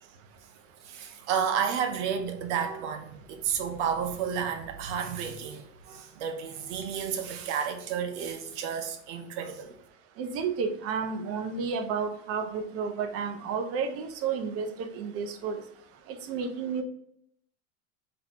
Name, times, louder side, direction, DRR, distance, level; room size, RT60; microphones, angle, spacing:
voice 1, 0.8-9.7, right 7 dB, 65° right, 0.9 m, -31 dB
voice 2, 10.2-15.6 16.3-16.8, right 5 dB, 40° right, 0.6 m, -31 dB
3.9 x 2.9 x 2.9 m
hypercardioid pair, 100°, 38 cm